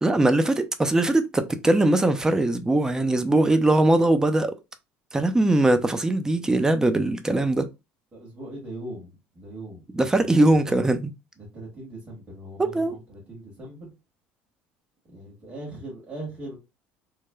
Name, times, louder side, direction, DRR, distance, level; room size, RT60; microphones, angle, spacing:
voice 1, 0.0-4.5 5.1-7.7 9.9-11.1 12.6-12.9, right 2 dB, 10° right, 0.4 m, -21 dB
voice 2, 8.1-9.8 10.1-10.9 11.4-13.9 15.1-16.6, right 1 dB, 30° right, 1.5 m, -40 dB
3.1 x 2.2 x 2.2 m
supercardioid pair, 95°, 5 cm